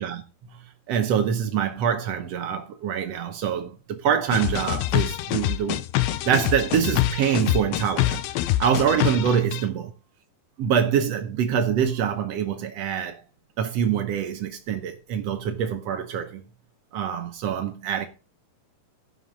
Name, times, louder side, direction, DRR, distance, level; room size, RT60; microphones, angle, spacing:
voice 1, 0.0-5.8 6.2-8.2 8.6-9.9 10.6-13.2 13.6-16.4 16.9-18.1, right 8 dB, 85° right, 1.4 m, -25 dB
sound 1, 4.3-9.6, left 14 dB, 85° left, 2.6 m, -25 dB
11.5 x 6.2 x 5.2 m
omnidirectional pair, 4.3 m